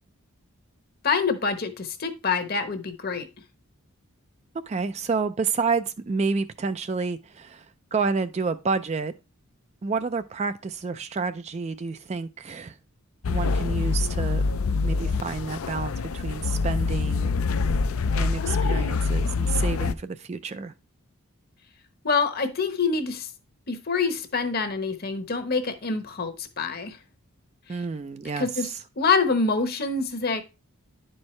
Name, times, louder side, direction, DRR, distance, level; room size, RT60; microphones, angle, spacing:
voice 1, 1.0-3.3 22.0-23.3 23.7-27.0 28.4-28.7 29.0-30.4, left 4 dB, 45° left, 1.0 m, -26 dB
voice 2, 4.7-9.1 9.8-12.8 13.3-17.3 18.2-20.7 27.7-28.8, right 4 dB, 30° right, 0.3 m, -29 dB
sound 1, 13.2-19.9, left 4 dB, 70° left, 0.5 m, -25 dB
10.5 x 4.5 x 3.1 m
head